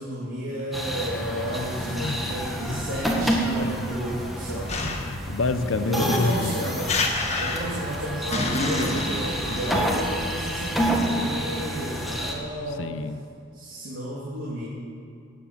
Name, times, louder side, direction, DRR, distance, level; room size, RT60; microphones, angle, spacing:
voice 1, 0.0-4.9 5.6-6.9 7.4-12.9 13.5-14.6, equal, 90° right, -8 dB, 3.2 m, -32 dB
sound 1, 0.7-12.3, equal, ahead, 1.7 m, -29 dB
sound 2, 4.7-5.2 6.0-7.9 8.3-10.2, left 3 dB, 30° left, 1.5 m, -28 dB
voice 2, 4.8-6.8 7.8-7.9 9.7-10.0 12.8-13.2, left 3 dB, 65° left, 11 dB, 0.7 m, -28 dB
17.5 x 9.5 x 7.2 m, 2.3 s
head